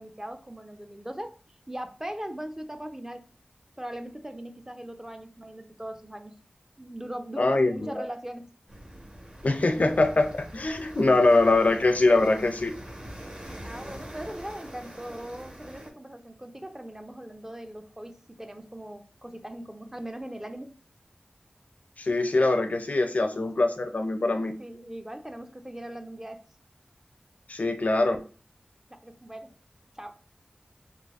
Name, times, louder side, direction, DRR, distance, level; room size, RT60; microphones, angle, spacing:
voice 1, 0.0-1.4 1.7-3.3 3.8-6.4 6.8-8.5 13.4-20.7 24.6-26.4 28.9-29.5 30.0-30.2, right 1 dB, 15° right, 0.4 m, -40 dB
voice 2, 7.4-8.1 9.4-12.7 22.0-24.5 27.5-28.2, left 2 dB, 60° left, 0.4 m, -23 dB
sound 1, 8.7-15.9, equal, 45° right, 1.0 m, -43 dB
4.0 x 2.6 x 2.4 m
wide cardioid pair, 55°, 3 cm